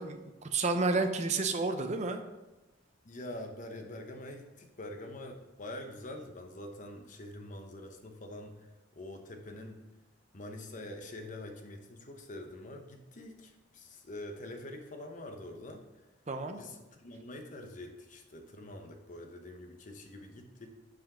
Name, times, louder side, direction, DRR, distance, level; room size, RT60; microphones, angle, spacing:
voice 1, 0.0-2.2 16.3-16.6, right 3 dB, 35° right, 6 dB, 0.6 m, -31 dB
voice 2, 3.0-8.7 9.0-9.8 10.3-15.8 16.6-20.7, left 1 dB, 40° left, 3 dB, 0.8 m, -45 dB
5.8 x 5.1 x 4.9 m, 1.1 s
head